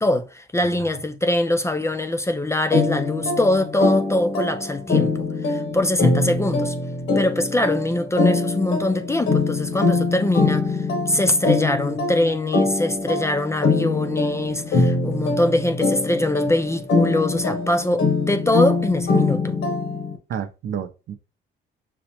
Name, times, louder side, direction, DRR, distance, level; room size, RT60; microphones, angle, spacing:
voice 1, 0.0-6.7 7.2-10.8 11.1-14.8 15.0-19.5, left 1 dB, 15° left, 0.4 m, -23 dB
voice 2, 0.6-0.9 14.7-14.9 20.3-21.1, right 8 dB, 65° right, 0.6 m, -31 dB
sound 1, 2.7-20.2, left 3 dB, 70° left, 1.0 m, -23 dB
5.9 x 2.0 x 2.9 m
cardioid pair, 90°, 20 cm